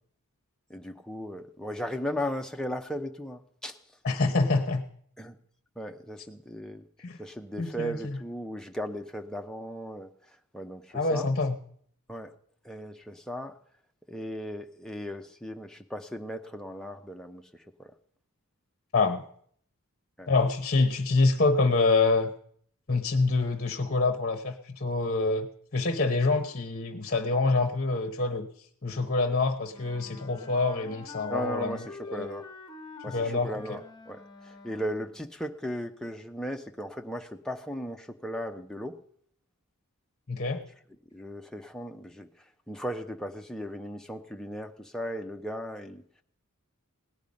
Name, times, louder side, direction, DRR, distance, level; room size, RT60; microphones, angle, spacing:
voice 1, 0.7-3.8 5.2-5.4 5.8-6.8 7.2-10.1 10.5-11.3 12.1-12.3 12.6-13.6 14.1-17.4 17.8-17.9 20.2-20.3 31.3-32.4 33.0-33.8 34.1-39.0 41.1-42.3 42.7-46.0, equal, 5° left, 4 dB, 0.8 m, -36 dB
voice 2, 4.0-4.8 7.0-7.2 7.6-8.2 10.9-11.6 18.9-19.2 20.3-22.3 22.9-28.5 28.8-32.3 33.1-33.8 40.3-40.6, left 3 dB, 45° left, 8 dB, 0.9 m, -26 dB
Wind instrument woodwind instrument, 29.7-35.2, left 4 dB, 20° left, 1.3 m, -46 dB
18.0 x 10.0 x 5.3 m, 0.63 s
head